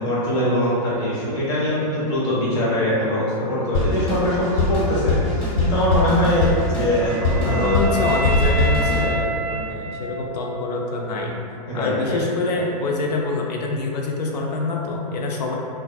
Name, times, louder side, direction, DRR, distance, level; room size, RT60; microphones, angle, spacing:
voice 1, 0.0-7.8 11.7-12.2, equal, 20° left, -7 dB, 0.5 m, -22 dB
Drum kit, 3.7-9.1, left 2 dB, 55° left, 1.2 m, -22 dB
Wind instrument woodwind instrument, 6.3-10.5, right 2 dB, 75° right, 0.5 m, -29 dB
voice 2, 7.4-11.4 11.7-15.5, left 3 dB, 90° left, 0 dB, 0.4 m, -26 dB
2.4 x 2.2 x 2.2 m, 2.4 s
hypercardioid pair, 150°, 20 cm